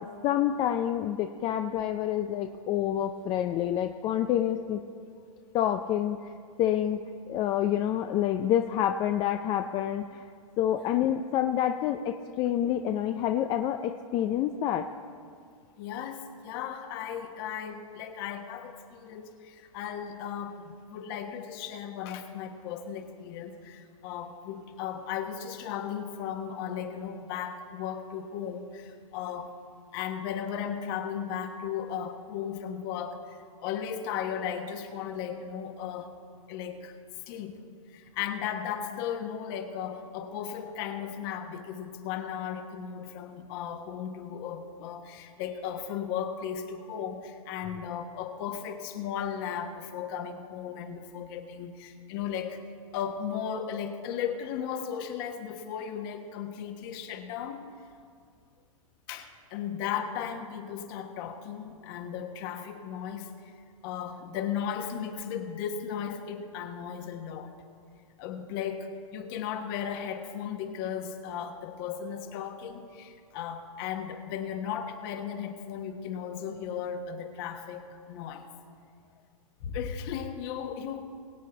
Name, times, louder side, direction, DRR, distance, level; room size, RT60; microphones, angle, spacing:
voice 1, 0.0-4.8 5.5-6.2 6.6-10.3 10.6-14.9, left 11 dB, 25° left, 6 dB, 0.4 m, -28 dB
voice 2, 15.8-29.5 29.9-36.1 36.5-37.0 37.3-37.6 37.9-52.6 52.9-57.6 59.1-63.5 63.8-67.5 68.2-78.5 79.6-81.1, left 8 dB, 45° left, 6 dB, 1.3 m, -36 dB
22.0 x 8.2 x 3.9 m, 2.2 s
hypercardioid pair, 135°, 18 cm